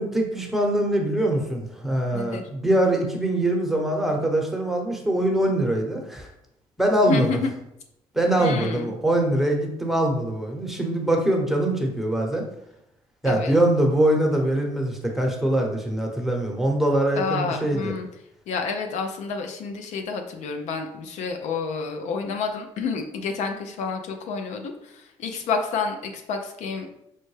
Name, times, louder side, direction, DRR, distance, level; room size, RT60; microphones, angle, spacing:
voice 1, 0.0-6.3 6.8-7.3 8.1-12.4 13.2-17.9, right 1 dB, ahead, 0 dB, 0.9 m, -23 dB
voice 2, 2.1-2.4 7.1-7.5 8.4-9.0 13.2-13.5 17.1-18.1 18.5-26.9, left 5 dB, 70° left, 5 dB, 0.5 m, -29 dB
5.3 x 2.1 x 3.2 m, 0.81 s
supercardioid pair, 80°, 13 cm